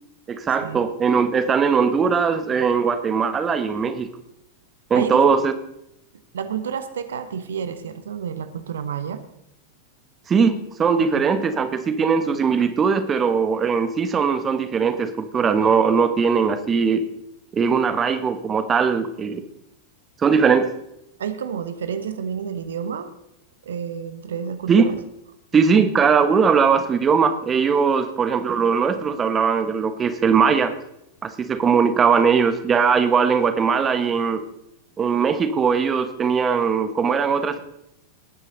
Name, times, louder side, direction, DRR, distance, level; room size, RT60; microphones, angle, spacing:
voice 1, 0.3-4.1 4.9-5.5 10.3-17.0 17.5-19.4 20.2-20.7 24.7-24.8 25.5-30.7 31.2-34.4 35.0-37.6, right 6 dB, 20° right, 10 dB, 1.2 m, -20 dB
voice 2, 4.9-5.2 6.3-9.2 11.0-11.2 21.2-23.1 23.6-24.9 25.5-25.9, right 7 dB, 65° right, 10 dB, 1.1 m, -30 dB
19.5 x 9.9 x 3.9 m, 0.79 s
figure-of-eight pair, 90°, 0 cm